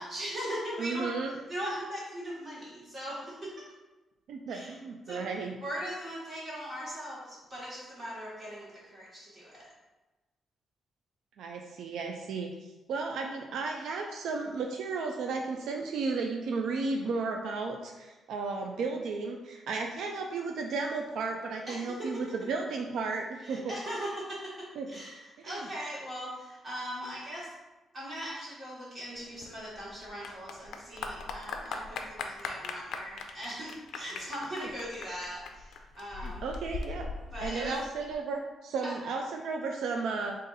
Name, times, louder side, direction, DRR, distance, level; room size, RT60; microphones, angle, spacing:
voice 1, 0.0-3.6 4.5-4.7 5.1-5.2 5.6-9.7 21.7-22.2 23.4-27.5 27.9-36.5 37.3-37.7 38.8-38.9, equal, 30° right, -6 dB, 1.4 m, -39 dB
voice 2, 0.8-1.3 4.3-5.6 11.4-12.5 12.9-23.7 24.8-24.9 25.4-25.7 36.2-37.1 37.4-40.4, right 4 dB, 85° right, 2 dB, 0.3 m, -34 dB
Clapping / Applause, 29.2-38.1, left 4 dB, 75° left, 0.4 m, -40 dB
3.9 x 2.5 x 3.9 m, 1.1 s
wide cardioid pair, 175°, 0 cm